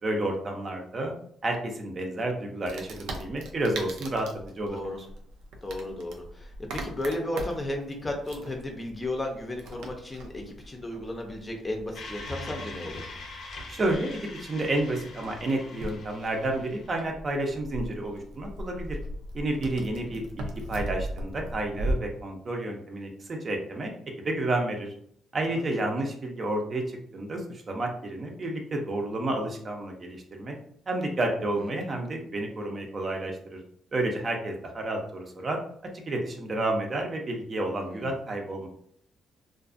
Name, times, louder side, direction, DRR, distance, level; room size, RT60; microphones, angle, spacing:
voice 1, 0.0-1.1 1.4-4.3 4.6-4.8 13.7-19.0 19.3-23.9 24.2-24.9 25.3-30.5 30.9-33.6 33.9-35.6 36.1-38.7, right 1 dB, 40° right, 2 dB, 0.5 m, -30 dB
Wood, 2.6-21.9, right 1 dB, 90° right, 0.4 m, -39 dB
voice 2, 4.6-5.0 5.6-13.1 20.1-20.2 25.5-25.7 31.6-31.7 37.8-38.2, left 1 dB, 20° left, 2 dB, 0.6 m, -34 dB
sound 1, 11.9-17.0, left 2 dB, 70° left, 0.6 m, -42 dB
2.5 x 2.4 x 2.5 m, 0.65 s
cardioid pair, 90°, 0 cm